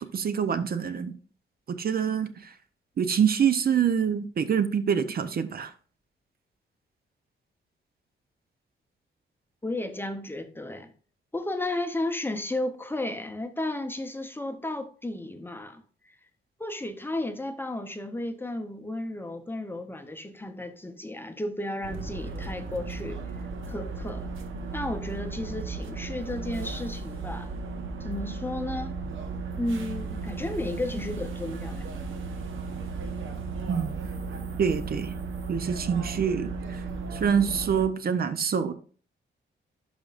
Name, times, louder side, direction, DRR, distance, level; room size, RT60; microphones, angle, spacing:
voice 1, 0.1-1.1 1.7-2.5 3.0-5.7 33.7-33.9 34.6-35.1 35.5-36.8 37.1-38.7, right 7 dB, 50° right, 0.6 m, -26 dB
voice 2, 9.6-10.9 11.3-16.2 16.6-23.2 23.7-24.3 24.7-27.5 28.0-29.0 29.6-31.9, left 1 dB, 10° left, 0.7 m, -33 dB
sound 1, 21.8-37.9, right 4 dB, 80° right, 1.1 m, -35 dB
11.5 x 5.1 x 2.5 m
wide cardioid pair, 140°, 20 cm